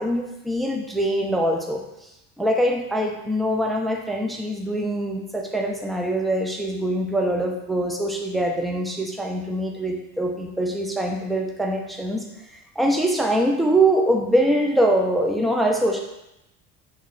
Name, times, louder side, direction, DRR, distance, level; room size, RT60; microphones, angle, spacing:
voice 1, 0.0-1.8 2.4-12.2 12.8-16.0, right 1 dB, ahead, 1 dB, 0.4 m, -23 dB
3.1 x 2.3 x 3.7 m, 0.89 s
supercardioid pair, 80°, 30 cm